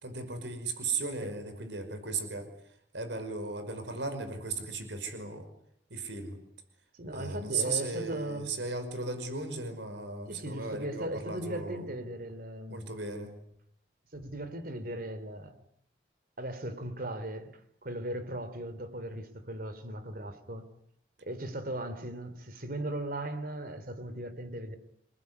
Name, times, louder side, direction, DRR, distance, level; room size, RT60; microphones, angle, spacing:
voice 1, 0.0-2.5 2.9-5.5 5.9-6.4 7.1-11.9 12.7-13.4, right 4 dB, 85° right, 5.5 m, -36 dB
voice 2, 6.9-8.5 10.3-12.9 14.1-15.6 16.4-20.7 21.2-24.8, right 1 dB, 55° right, 3.5 m, -38 dB
28.5 x 20.5 x 9.7 m
head